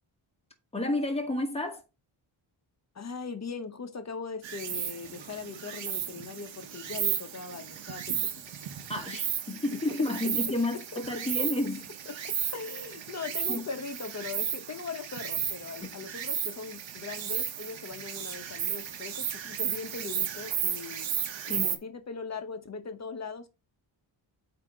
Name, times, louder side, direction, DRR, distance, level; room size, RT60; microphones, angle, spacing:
voice 1, 0.7-1.8 8.9-11.9 13.5-13.6 21.5-21.8, left 2 dB, 15° left, 1.2 m, -31 dB
voice 2, 2.9-8.4 9.1-9.2 10.4-10.5 10.9-11.0 12.1-21.1 21.5-23.5, left 5 dB, 35° left, 0.9 m, -40 dB
Insect, 4.4-21.8, right 9 dB, 70° right, 1.0 m, -34 dB
8.2 x 2.9 x 5.0 m
wide cardioid pair, 170°, 46 cm